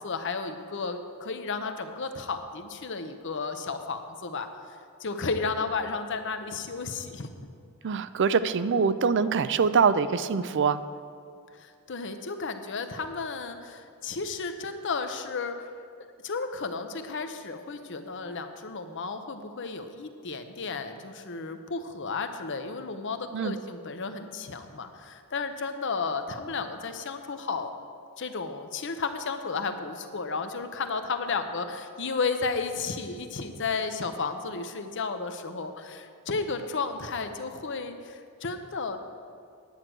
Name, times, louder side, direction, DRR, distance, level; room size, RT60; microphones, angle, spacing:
voice 1, 0.0-4.5 5.0-7.3 11.6-15.7 16.2-27.7 28.2-39.0, left 4 dB, 60° left, 8 dB, 0.8 m, -33 dB
voice 2, 7.8-10.8 23.3-23.5, right 5 dB, 55° right, 14 dB, 0.4 m, -24 dB
9.9 x 9.0 x 6.2 m, 2.5 s
head